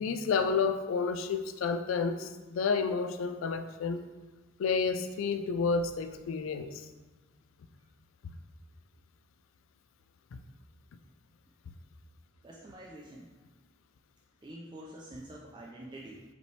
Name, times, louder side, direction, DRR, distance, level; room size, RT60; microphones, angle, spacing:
voice 1, 0.0-4.0 4.6-6.9, left 5 dB, 80° left, 8 dB, 0.3 m, -30 dB
voice 2, 12.4-13.3 14.4-16.2, right 1 dB, 20° right, -3 dB, 0.3 m, -46 dB
5.0 x 3.2 x 3.2 m, 1.2 s
head